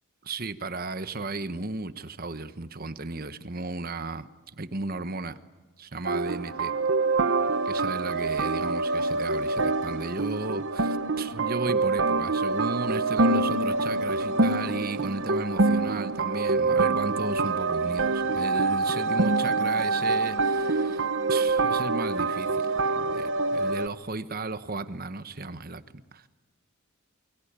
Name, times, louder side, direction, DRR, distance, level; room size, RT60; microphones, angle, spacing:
voice 1, 0.2-5.4 5.8-6.7 7.6-26.3, right 3 dB, 45° right, 1.2 m, -35 dB
sound 1, 6.0-23.9, right 3 dB, 60° right, 0.8 m, -26 dB
28.5 x 23.5 x 8.9 m
head